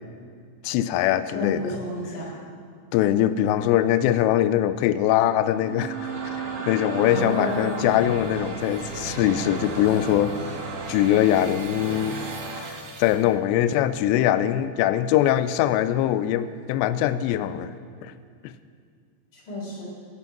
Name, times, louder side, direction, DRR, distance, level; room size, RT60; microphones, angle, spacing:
voice 1, 0.6-1.7 2.9-6.1 6.7-10.4 10.9-12.2 12.6-17.7 18.0-18.1 18.4-18.5, left 12 dB, 85° left, 13 dB, 2.7 m, -22 dB
voice 2, 1.3-2.4 7.0-8.0 19.3-19.8, left 1 dB, 45° left, -6 dB, 4.9 m, -31 dB
sound 1, 5.5-13.2, right 4 dB, 55° right, 2.6 m, -34 dB
19.0 x 9.9 x 6.0 m, 2.2 s
omnidirectional pair, 5.3 m